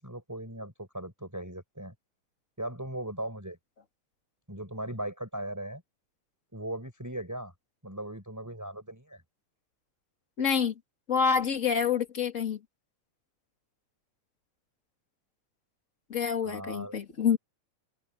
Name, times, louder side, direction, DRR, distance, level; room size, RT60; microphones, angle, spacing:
voice 1, 0.0-1.9 2.6-3.6 4.5-5.8 6.5-7.5 7.8-9.2 16.4-17.0, right 1 dB, 5° right, 7.1 m, -38 dB
voice 2, 10.4-10.7 11.1-12.6 16.1-17.4, left 7 dB, 25° left, 2.0 m, -27 dB
omnidirectional pair, 4.2 m